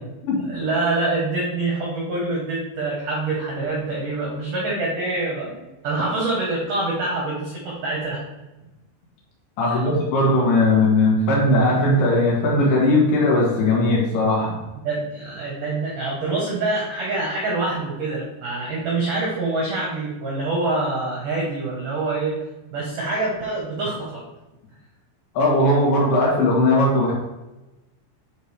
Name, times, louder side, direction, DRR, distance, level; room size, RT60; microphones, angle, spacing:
voice 1, 0.5-8.2 9.6-9.9 14.8-22.3 22.7-24.2, right 2 dB, 85° right, -3 dB, 1.8 m, -25 dB
voice 2, 9.6-14.6 25.4-27.1, left 1 dB, 65° left, -4 dB, 3.7 m, -18 dB
10.5 x 4.4 x 3.4 m, 1.0 s
omnidirectional pair, 6.0 m